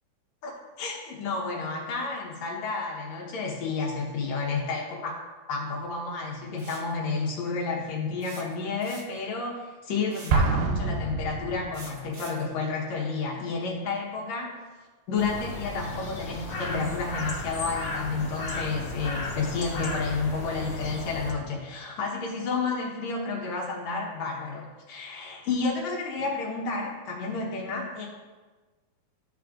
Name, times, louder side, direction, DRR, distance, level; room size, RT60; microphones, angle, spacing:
voice 1, 0.4-5.2 5.5-14.5 15.1-28.1, left 4 dB, 65° left, -3 dB, 2.0 m, -31 dB
sound 1, 6.6-6.9 8.2-9.3 10.1-10.5 11.7-12.5, right 1 dB, 50° right, 1.3 m, -46 dB
Explosion, 10.3-12.1, right 4 dB, 90° right, 1.6 m, -26 dB
sound 2, 15.2-21.3, left 1 dB, 90° left, 1.0 m, -35 dB
12.5 x 4.9 x 2.5 m, 1.3 s
omnidirectional pair, 4.1 m